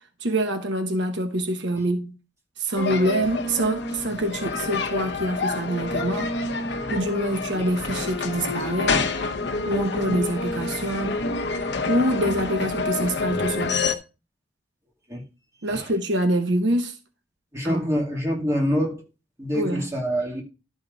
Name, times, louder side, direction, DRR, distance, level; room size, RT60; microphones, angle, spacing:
voice 1, 0.2-2.1 2.6-6.4 6.9-9.1 9.6-11.2 11.9-13.8 15.6-17.0 17.6-17.8 19.5-19.9, right 1 dB, 70° right, 1.1 m, -25 dB
sound 1, 2.8-14.0, left 3 dB, 65° left, 1.0 m, -28 dB
voice 2, 17.5-19.0 19.4-20.4, equal, 15° right, 2.4 m, -26 dB
12.0 x 5.2 x 3.9 m
head